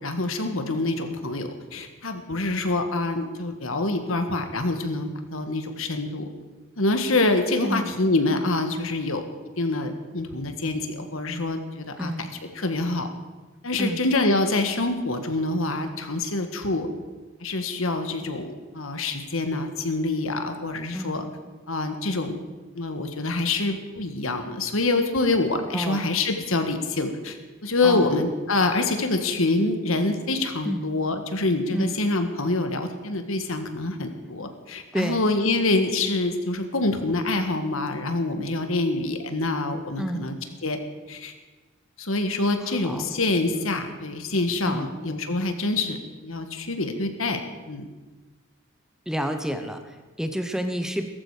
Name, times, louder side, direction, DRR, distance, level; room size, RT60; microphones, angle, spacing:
voice 1, 0.0-6.3 6.8-9.2 9.6-12.3 12.5-13.1 13.6-16.9 17.4-21.3 21.7-22.4 22.7-27.4 27.6-40.3 40.6-40.8 41.1-41.3 42.0-47.4 47.7-47.9, left 2 dB, 75° left, 7 dB, 1.6 m, -26 dB
voice 2, 12.0-12.3 13.8-14.0 20.9-21.2 25.7-26.1 27.8-28.2 30.6-30.8 31.7-32.0 34.9-35.2 40.0-40.3 42.6-43.1 44.7-44.9 49.1-51.1, equal, 5° right, 6 dB, 0.8 m, -29 dB
17.0 x 14.0 x 5.0 m, 1.2 s
head